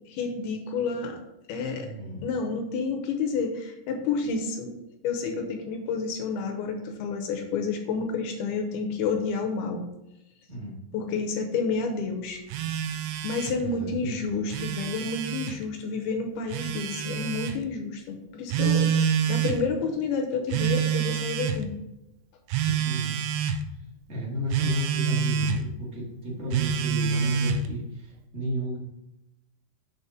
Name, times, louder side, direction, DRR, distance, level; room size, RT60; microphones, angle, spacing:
voice 1, 0.1-1.2 1.5-1.9 2.2-4.7 5.0-9.9 10.9-12.4 13.2-21.7, left 4 dB, 80° left, 4 dB, 2.6 m, -30 dB
voice 2, 1.8-2.2 10.5-10.7 13.6-14.2 22.6-23.2 24.1-28.8, right 1 dB, 50° right, -4 dB, 0.8 m, -33 dB
Telephone, 12.5-13.6 14.3-15.6 16.5-17.6 18.5-19.6 20.5-21.6 22.5-23.6 24.5-25.6 26.5-27.7, right 7 dB, 80° right, 2.3 m, -27 dB
6.7 x 4.1 x 5.1 m, 0.90 s
omnidirectional pair, 4.6 m